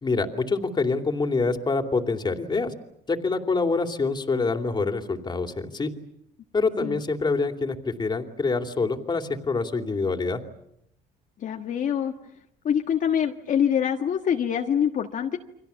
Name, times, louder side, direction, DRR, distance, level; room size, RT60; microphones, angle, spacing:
voice 1, 0.0-2.7 3.1-5.9 6.5-10.4, left 3 dB, 25° left, 5 dB, 2.9 m, -26 dB
voice 2, 11.4-12.1 12.6-15.4, left 8 dB, 50° left, 3 dB, 1.5 m, -25 dB
30.0 x 24.5 x 7.1 m, 0.78 s
cardioid pair, 110°, 17 cm